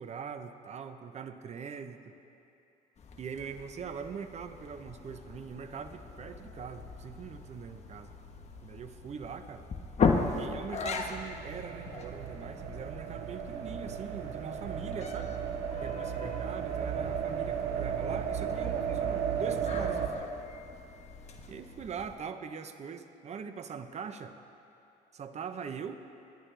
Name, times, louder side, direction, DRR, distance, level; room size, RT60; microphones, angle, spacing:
voice 1, 0.0-2.2 3.2-8.1 8.6-9.7 10.4-15.4 15.8-20.3 21.5-24.4 25.1-25.9, right 6 dB, 40° right, 9 dB, 0.9 m, -42 dB
sound 1, 3.0-22.2, left 4 dB, 40° left, 1.3 m, -38 dB
sound 2, 10.8-20.1, right 8 dB, 85° right, 1.6 m, -35 dB
29.0 x 11.0 x 3.4 m, 2.8 s
cardioid pair, 110°, 17 cm